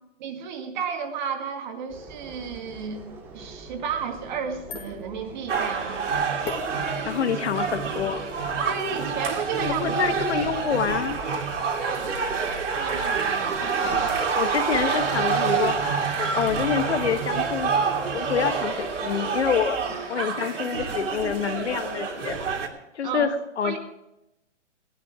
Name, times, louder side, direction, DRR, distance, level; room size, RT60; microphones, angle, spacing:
voice 1, 0.2-6.3 8.6-10.3 11.8-14.0 14.9-15.5 20.1-20.3 23.0-23.3 23.6-23.8, right 6 dB, 40° right, 5 dB, 2.0 m, -33 dB
sound 1, 1.9-19.9, right 2 dB, 5° right, 0.6 m, -45 dB
sound 2, 4.2-10.4, left 5 dB, 15° left, 1.8 m, -44 dB
sound 3, 5.5-22.7, right 5 dB, 80° right, 3.0 m, -27 dB
voice 2, 7.1-8.3 9.6-11.2 13.8-15.7 16.2-17.7 18.1-19.8 20.1-22.4 22.9-23.8, left 8 dB, 65° left, 10 dB, 1.5 m, -27 dB
17.5 x 12.0 x 4.8 m, 0.88 s
hypercardioid pair, 155°, 36 cm